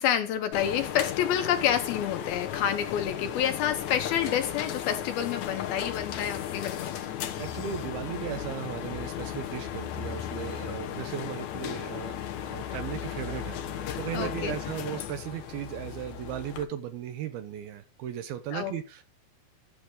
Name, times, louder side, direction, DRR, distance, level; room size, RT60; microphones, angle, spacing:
voice 1, 0.0-6.9 14.1-14.5 18.5-18.7, left 10 dB, 70° left, 8 dB, 2.5 m, -28 dB
sound 1, 0.5-16.6, left 10 dB, 90° left, 1.6 m, -35 dB
voice 2, 7.4-19.0, right 10 dB, 75° right, 10 dB, 2.5 m, -37 dB
13.0 x 6.6 x 3.8 m, 0.30 s
omnidirectional pair, 4.9 m